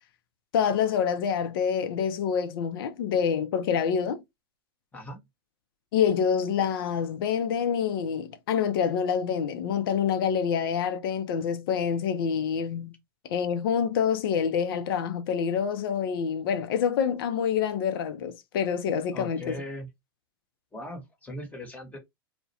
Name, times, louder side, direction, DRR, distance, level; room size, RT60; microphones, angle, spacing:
voice 1, 0.5-4.2 5.9-12.9 13.3-19.6, left 7 dB, 65° left, 0.5 m, -27 dB
voice 2, 4.9-5.2 19.1-19.9 20.7-22.0, left 1 dB, 10° left, 1.0 m, -39 dB
2.3 x 2.1 x 2.7 m
hypercardioid pair, 105°, 13 cm